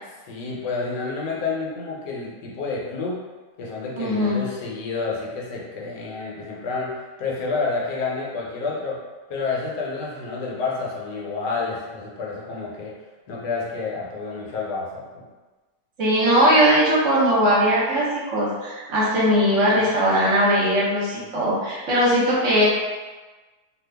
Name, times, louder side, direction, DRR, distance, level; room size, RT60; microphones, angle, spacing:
voice 1, 0.1-3.2 3.6-9.0 9.3-13.0 13.3-15.2, left 4 dB, 75° left, -3 dB, 1.2 m, -29 dB
voice 2, 4.0-4.4 16.0-18.0 18.3-22.7, equal, 50° right, -7 dB, 1.1 m, -19 dB
2.8 x 2.4 x 3.3 m, 1.3 s
omnidirectional pair, 1.9 m